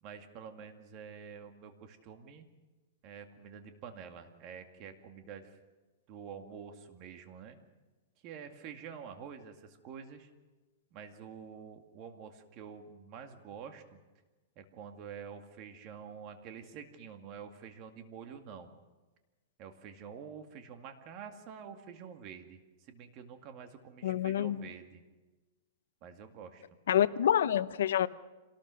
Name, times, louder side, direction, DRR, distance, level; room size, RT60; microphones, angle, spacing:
voice 1, 0.0-2.5 3.0-5.6 6.1-7.6 8.2-10.3 10.9-14.0 14.6-18.7 19.6-22.6 22.9-25.0 26.0-26.6, right 7 dB, 35° right, 6 dB, 2.2 m, -48 dB
voice 2, 24.0-24.6 26.9-28.1, left 10 dB, 85° left, 15 dB, 0.8 m, -27 dB
26.5 x 18.5 x 6.4 m, 1.2 s
supercardioid pair, 160°, 0 cm